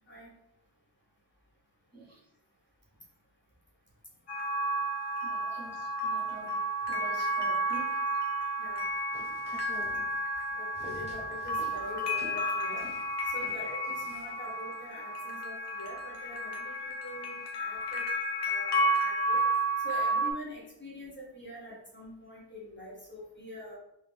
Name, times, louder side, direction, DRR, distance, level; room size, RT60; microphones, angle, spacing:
sound 1, 4.3-20.3, right 1 dB, 75° left, 0.7 m, -32 dB
voice 1, 5.2-6.6 6.9-8.0 13.4-13.6, right 3 dB, 35° right, -5 dB, 1.2 m, -47 dB
sound 2, 9.0-14.4, equal, 15° right, 0.7 m, -50 dB
voice 2, 9.6-10.1 10.5-12.8 13.2-18.0 18.4-19.4 19.8-23.7, left 1 dB, 30° left, -5 dB, 1.0 m, -44 dB
3.5 x 2.8 x 3.3 m, 0.81 s
wide cardioid pair, 155°, 41 cm